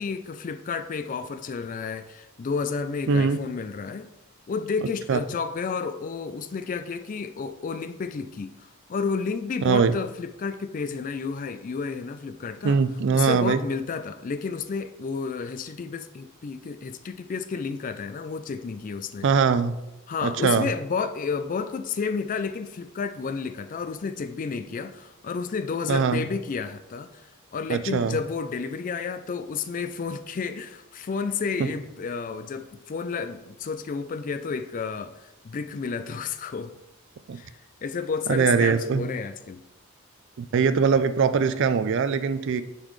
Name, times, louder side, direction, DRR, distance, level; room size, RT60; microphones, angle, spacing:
voice 1, 0.0-4.1 4.5-12.8 13.1-19.3 20.1-27.2 27.5-36.8 37.3-39.6, left 5 dB, 35° left, 11 dB, 0.3 m, -31 dB
voice 2, 3.1-3.4 5.1-5.2 9.6-10.0 12.6-13.6 19.2-19.8 20.2-20.7 25.9-26.2 27.7-28.2 31.6-31.7 37.3-37.4 38.3-39.1 40.4-42.6, right 5 dB, 55° right, 12 dB, 0.4 m, -22 dB
9.7 x 4.1 x 3.1 m, 0.98 s
head